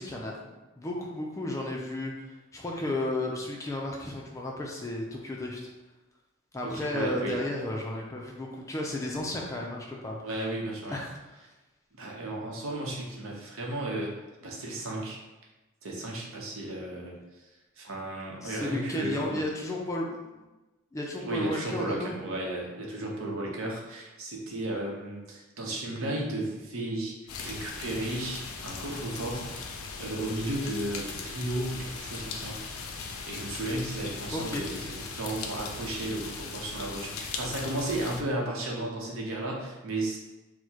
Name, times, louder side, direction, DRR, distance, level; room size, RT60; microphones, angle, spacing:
voice 1, 0.0-5.7 6.5-10.2 10.9-11.2 18.4-20.4 20.9-22.1 34.3-34.6, left 1 dB, 15° left, -1 dB, 0.3 m, -33 dB
voice 2, 6.6-7.4 10.2-11.0 11.9-15.2 15.8-17.5 17.8-19.4 21.2-29.6 30.0-32.6 33.0-40.2, right 1 dB, 75° right, -1 dB, 0.8 m, -34 dB
sound 1, 27.3-38.2, left 4 dB, 85° left, 0.4 m, -39 dB
4.5 x 2.1 x 2.8 m, 1.1 s
head